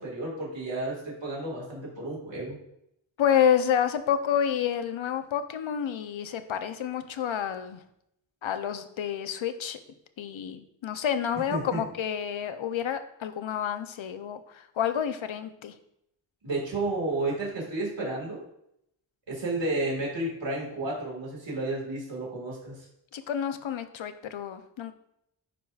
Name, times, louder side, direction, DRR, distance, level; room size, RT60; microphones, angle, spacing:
voice 1, 0.0-2.6 11.5-11.8 16.4-18.4 19.3-22.8, right 2 dB, 70° right, -4 dB, 1.9 m, -32 dB
voice 2, 3.2-7.8 8.4-9.8 10.2-15.7 23.1-24.9, left 8 dB, 75° left, 10 dB, 0.6 m, -29 dB
10.0 x 4.7 x 2.4 m, 0.77 s
wide cardioid pair, 70°, 47 cm